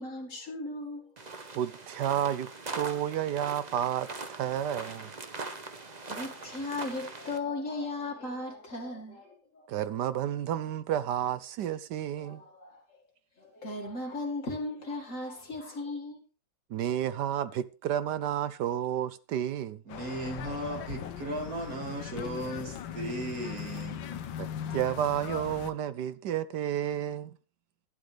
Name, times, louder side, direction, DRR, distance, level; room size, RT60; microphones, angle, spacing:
voice 1, 0.0-1.4 4.4-9.7 12.2-13.0 13.4-16.2, left 2 dB, 45° left, 2.5 m, -38 dB
sound 1, 1.2-7.4, right 3 dB, 30° right, 0.9 m, -41 dB
voice 2, 1.5-2.5 2.7-5.1 9.7-12.4 16.7-19.8 24.4-24.5 24.7-27.3, right 10 dB, 70° right, 1.2 m, -31 dB
sound 2, 19.9-25.7, left 9 dB, 80° left, 1.6 m, -39 dB
voice 3, 19.9-24.0, right 1 dB, 50° right, 2.9 m, -36 dB
12.0 x 11.5 x 3.4 m
omnidirectional pair, 2.0 m